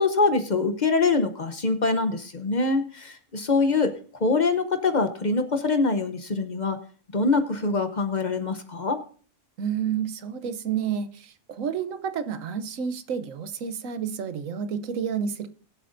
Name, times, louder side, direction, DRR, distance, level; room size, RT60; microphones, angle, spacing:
voice 1, 0.0-3.9 4.2-6.8 7.1-9.0, left 3 dB, 40° left, 8 dB, 0.9 m, -24 dB
voice 2, 9.6-15.5, right 7 dB, 85° right, 10 dB, 1.2 m, -30 dB
21.5 x 7.6 x 2.6 m, 0.44 s
omnidirectional pair, 1.3 m